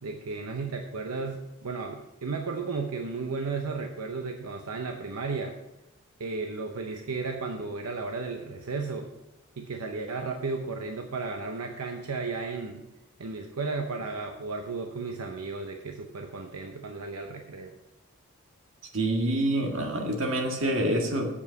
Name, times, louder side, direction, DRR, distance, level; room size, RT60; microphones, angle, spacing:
voice 1, 0.0-5.6 6.2-9.1 9.6-12.8 13.2-17.8, right 4 dB, 85° right, 4 dB, 0.8 m, -34 dB
voice 2, 18.9-21.3, right 1 dB, 60° right, 2 dB, 1.7 m, -26 dB
8.4 x 7.3 x 5.2 m, 0.96 s
head